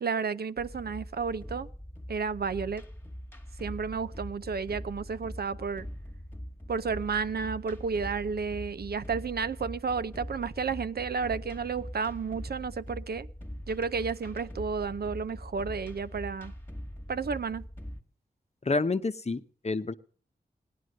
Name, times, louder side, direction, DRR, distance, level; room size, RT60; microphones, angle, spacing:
voice 1, 0.0-1.7 2.1-2.8 3.6-5.9 6.7-13.3 13.7-16.5 17.1-17.6, right 5 dB, 80° right, 0.6 m, -32 dB
sound 1, 0.6-18.0, equal, 15° left, 1.4 m, -42 dB
voice 2, 18.6-19.9, left 3 dB, 40° left, 0.8 m, -29 dB
17.5 x 10.0 x 6.4 m
wide cardioid pair, 70°, 16 cm